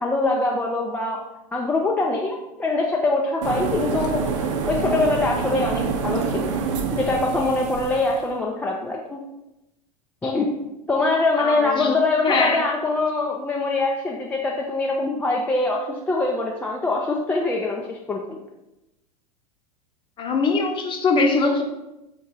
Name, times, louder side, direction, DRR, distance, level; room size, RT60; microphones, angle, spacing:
voice 1, 0.0-1.2 1.5-4.3 4.6-6.5 6.9-9.2 10.2-10.5 10.9-18.4, left 3 dB, 10° left, -1 dB, 0.3 m, -23 dB
sound 1, 3.4-8.2, right 5 dB, 50° right, 0.6 m, -26 dB
voice 2, 11.4-11.9 12.2-12.6 20.2-21.6, left 3 dB, 25° left, 3 dB, 0.7 m, -22 dB
4.3 x 3.0 x 3.7 m, 0.94 s
figure-of-eight pair, 85°, 20 cm